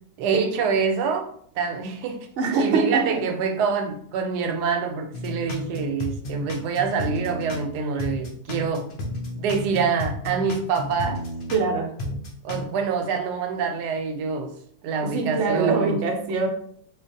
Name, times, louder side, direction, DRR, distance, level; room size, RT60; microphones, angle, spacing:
voice 1, 0.2-1.3 1.6-2.3 2.6-8.9 9.4-11.2 12.4-14.5 14.8-16.0, right 5 dB, 85° right, 5 dB, 1.2 m, -26 dB
voice 2, 2.4-3.2 11.5-11.9 15.0-16.5, right 4 dB, 55° right, 2 dB, 0.9 m, -23 dB
sound 1, 5.1-7.7 8.0-11.7 12.0-12.7, left 1 dB, 60° left, 0.5 m, -32 dB
4.4 x 2.4 x 2.6 m, 0.63 s
omnidirectional pair, 1.7 m